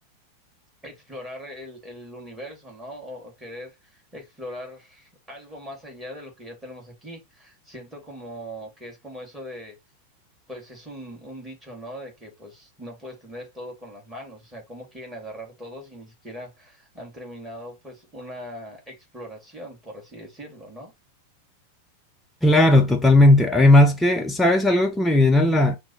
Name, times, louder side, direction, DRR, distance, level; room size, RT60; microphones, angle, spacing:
voice 1, 0.8-9.8 10.5-20.9, equal, 10° right, 1.9 m, -40 dB
voice 2, 22.4-25.8, left 1 dB, 5° left, 0.4 m, -16 dB
5.9 x 2.0 x 2.9 m
figure-of-eight pair, 90°, 0 cm